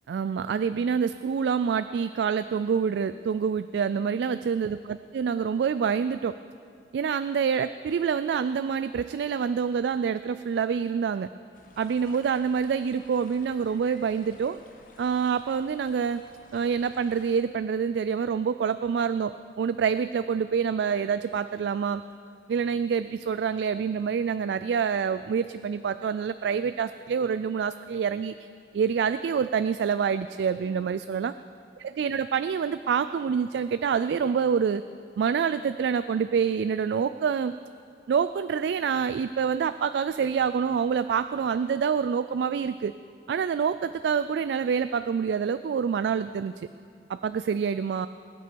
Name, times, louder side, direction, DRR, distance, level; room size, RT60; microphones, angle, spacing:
voice 1, 0.1-6.4 6.9-11.3 11.8-14.6 15.0-16.2 16.5-22.0 22.5-28.3 28.7-31.3 32.0-34.8 35.2-37.5 38.1-42.9 43.3-46.7 47.1-48.1, right 6 dB, 75° right, 12 dB, 0.3 m, -26 dB
sound 1, 11.5-17.4, left 3 dB, 45° left, 1.1 m, -55 dB
21.0 x 9.2 x 4.6 m, 2.3 s
head